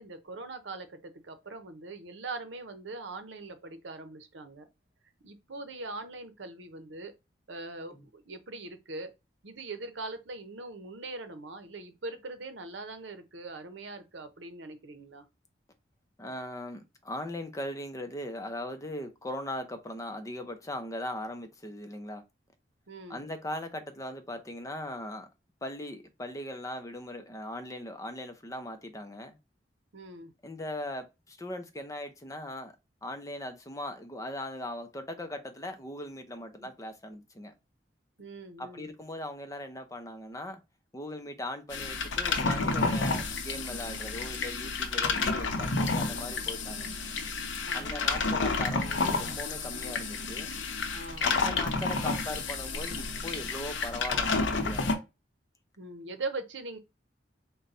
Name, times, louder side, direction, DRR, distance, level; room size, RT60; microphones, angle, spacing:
voice 1, 0.0-4.7 5.2-7.1 7.5-9.1 9.4-15.3 22.9-23.3 29.9-30.3 38.2-38.9 46.8-47.0 47.7-48.1 50.9-51.5 55.8-56.8, right 3 dB, 80° right, 0.7 m, -41 dB
voice 2, 16.2-22.2 23.1-25.3 25.6-29.4 30.4-32.7 33.0-37.5 38.6-40.6 40.9-46.9 47.7-50.5 51.2-55.0, left 1 dB, 20° left, 0.6 m, -39 dB
sound 1, 41.7-54.9, left 3 dB, 90° left, 0.7 m, -30 dB
4.0 x 2.2 x 4.1 m
head